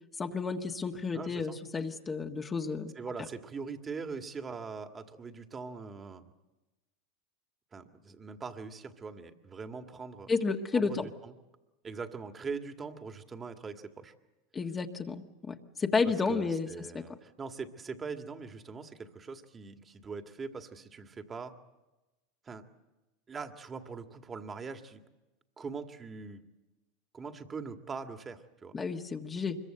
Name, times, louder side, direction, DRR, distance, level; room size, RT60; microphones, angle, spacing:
voice 1, 0.2-2.9 10.3-11.1 14.5-16.7 28.7-29.6, left 4 dB, 25° left, 3 dB, 1.6 m, -31 dB
voice 2, 1.1-1.6 3.0-6.2 7.7-10.3 10.7-11.3 11.8-14.1 16.0-21.5 22.5-22.6 23.3-25.0 25.6-26.4 27.1-28.8, right 5 dB, 25° right, 6 dB, 2.0 m, -42 dB
25.0 x 22.5 x 8.0 m, 1.1 s
hypercardioid pair, 95°, 0 cm